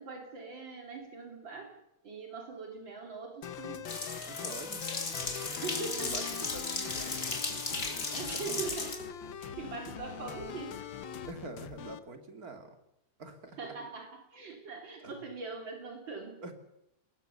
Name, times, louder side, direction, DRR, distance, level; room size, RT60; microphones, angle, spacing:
voice 1, 0.0-1.7 2.0-3.9 5.5-6.1 7.8-9.1 9.4-10.8 11.1-11.2 13.6-16.4, right 4 dB, 80° right, 2 dB, 3.9 m, -42 dB
sound 1, 3.4-12.0, left 9 dB, 85° left, 1.9 m, -43 dB
sound 2, 3.9-9.0, left 3 dB, 45° left, 3.0 m, -36 dB
voice 2, 4.3-4.8 5.2-5.5 5.9-7.5 8.2-8.8 9.2-9.7 11.2-12.8 13.2-13.7 15.0-15.2 16.4-16.5, right 2 dB, 50° right, 6 dB, 3.1 m, -46 dB
25.0 x 20.5 x 6.9 m, 0.84 s
omnidirectional pair, 2.0 m